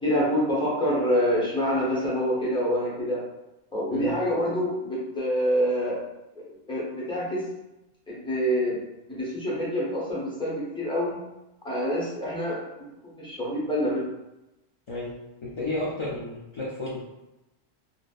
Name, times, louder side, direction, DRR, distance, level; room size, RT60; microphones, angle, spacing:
voice 1, 0.0-3.2 3.7-5.9 6.7-7.4 8.1-8.8 9.1-11.2 11.6-12.6 13.2-14.0, equal, 5° left, -7 dB, 0.6 m, -26 dB
voice 2, 15.4-17.0, left 1 dB, 55° left, -8 dB, 0.3 m, -32 dB
2.8 x 2.0 x 2.3 m, 0.95 s
omnidirectional pair, 1.1 m